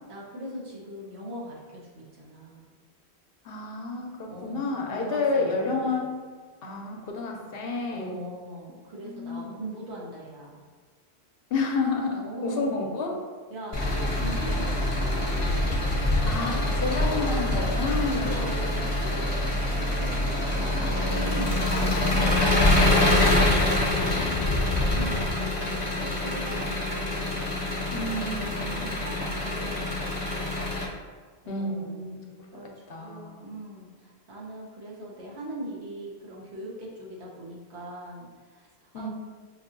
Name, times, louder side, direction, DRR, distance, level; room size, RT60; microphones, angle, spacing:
voice 1, 0.1-2.7 4.3-6.0 7.9-10.6 12.1-12.9 13.5-15.7 18.2-23.0 24.5-27.8 28.2-30.4 31.4-32.1 32.5-39.1, right 1 dB, 85° right, -4 dB, 1.2 m, -41 dB
voice 2, 3.4-6.1 6.6-8.2 9.0-9.6 11.5-13.2 16.2-18.4 21.7-22.2 23.8-24.6 25.0-25.8 27.9-28.9 31.5-32.3 32.9-33.5 38.9-39.1, left 3 dB, 65° left, 1 dB, 0.8 m, -31 dB
Engine, 13.7-30.9, left 1 dB, 35° left, 0.7 m, -25 dB
5.3 x 2.7 x 2.6 m, 1.5 s
omnidirectional pair, 1.1 m